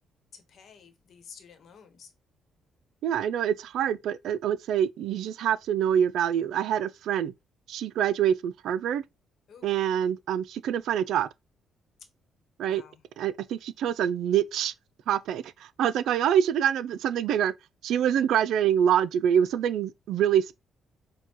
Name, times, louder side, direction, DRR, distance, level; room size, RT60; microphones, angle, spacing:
voice 1, 0.3-2.1 9.5-9.8 12.6-13.0, left 6 dB, 65° left, 1.1 m, -51 dB
voice 2, 3.0-7.3 7.7-9.0 9.6-11.3 12.6-12.8 13.2-14.7 15.1-15.4 15.8-17.5 17.8-20.5, right 9 dB, 80° right, 0.3 m, -25 dB
6.5 x 2.2 x 3.0 m
cardioid pair, 90°, 0 cm